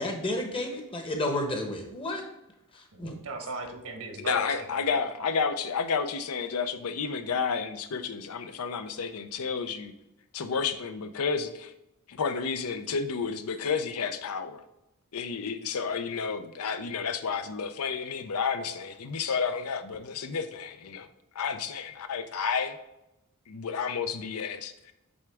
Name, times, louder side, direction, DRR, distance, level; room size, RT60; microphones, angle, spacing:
voice 1, 0.0-2.2 2.7-3.1, left 1 dB, 25° left, 3 dB, 0.9 m, -31 dB
voice 2, 2.9-5.1, right 2 dB, 75° right, 3 dB, 1.2 m, -38 dB
voice 3, 4.2-9.9 10.3-11.7 12.1-14.6 15.1-21.1 21.3-22.8 23.5-24.9, left 5 dB, 80° left, 9 dB, 0.6 m, -31 dB
7.9 x 3.5 x 3.4 m, 0.88 s
head